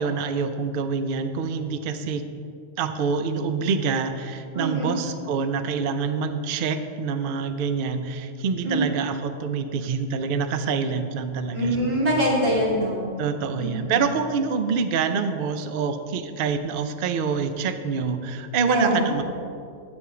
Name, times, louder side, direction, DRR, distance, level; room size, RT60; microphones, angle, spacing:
voice 1, 0.0-2.2 2.8-11.8 12.1-12.4 13.2-19.2, right 5 dB, 55° right, 9 dB, 0.6 m, -26 dB
voice 2, 4.5-4.9 8.6-8.8 11.5-13.1 13.6-14.0 18.7-19.2, right 1 dB, 85° right, -5 dB, 3.0 m, -24 dB
9.8 x 8.0 x 4.8 m, 2.3 s
omnidirectional pair, 1.3 m